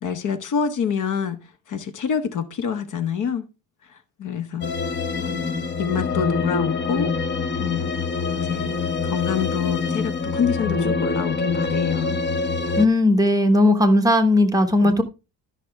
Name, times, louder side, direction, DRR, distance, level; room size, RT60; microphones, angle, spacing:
voice 1, 0.0-1.4 1.7-3.5 3.9-4.7 5.2-5.4 5.8-7.1 7.6-8.0 8.5-8.7 9.0-12.2 14.8-14.9, left 7 dB, 55° left, 1.0 m, -26 dB
sound 1, 4.6-12.9, left 4 dB, 30° left, 0.8 m, -25 dB
voice 2, 12.8-15.0, left 1 dB, 10° right, 1.0 m, -17 dB
12.5 x 6.0 x 3.4 m
cardioid pair, 150°, 36 cm